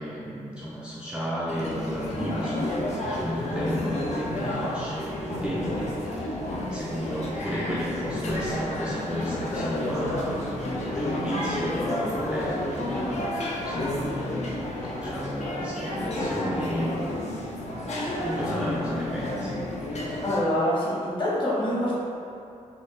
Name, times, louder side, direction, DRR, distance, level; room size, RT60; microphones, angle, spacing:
voice 1, 0.0-2.8 3.1-6.4 6.7-17.0 18.2-19.6, equal, 5° right, -8 dB, 0.4 m, -33 dB
sound 1, 1.5-20.4, left 1 dB, 55° left, 0.6 m, -30 dB
voice 2, 20.2-21.9, equal, 35° left, -7 dB, 1.0 m, -25 dB
4.0 x 2.3 x 3.2 m, 2.6 s
wide cardioid pair, 105°, 14 cm